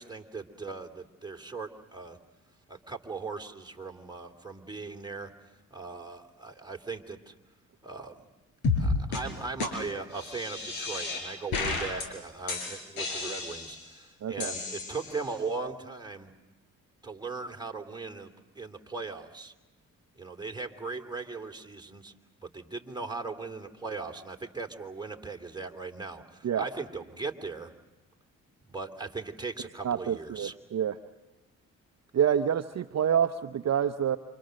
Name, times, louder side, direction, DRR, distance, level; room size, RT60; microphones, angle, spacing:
voice 1, 0.0-2.2 2.7-5.3 5.7-7.3 7.8-8.2 8.7-16.3 17.0-18.3 18.5-19.5 20.2-22.1 22.5-27.7 28.7-30.5, right 4 dB, 10° right, 3 dB, 2.9 m, -38 dB
sound 1, 8.6-8.8 9.1-9.2 9.6-9.7 10.1-11.2 11.5-12.1 12.5-13.9 14.4-15.3, left 4 dB, 85° left, 5.8 m, -32 dB
voice 2, 14.2-14.5 26.4-26.6 29.8-31.0 32.1-34.2, right 9 dB, 50° right, 7 dB, 0.9 m, -27 dB
28.0 x 25.5 x 6.5 m, 1.1 s
supercardioid pair, 65°, 34 cm